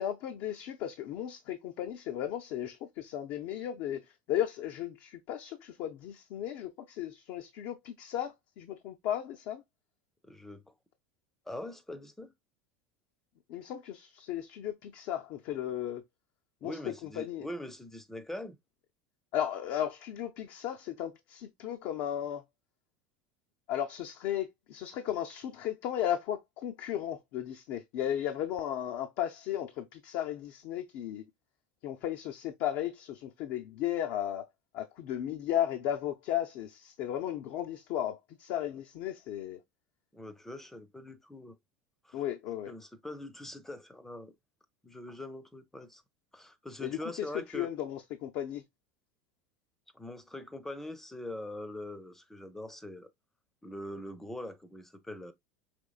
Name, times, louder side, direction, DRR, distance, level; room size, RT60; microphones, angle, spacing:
voice 1, 0.0-9.6 13.5-16.0 16.6-17.5 19.3-22.4 23.7-31.2 31.8-34.5 34.7-39.6 42.1-42.7 46.8-48.6, left 11 dB, 60° left, 0.5 m, -35 dB
voice 2, 10.2-10.7 11.5-12.3 16.6-18.6 40.1-41.6 42.0-42.2 42.7-44.3 44.8-46.0 46.3-47.7 49.9-53.1 53.6-55.3, left 1 dB, 5° left, 0.6 m, -43 dB
5.1 x 3.0 x 2.4 m
supercardioid pair, 120°, 6 cm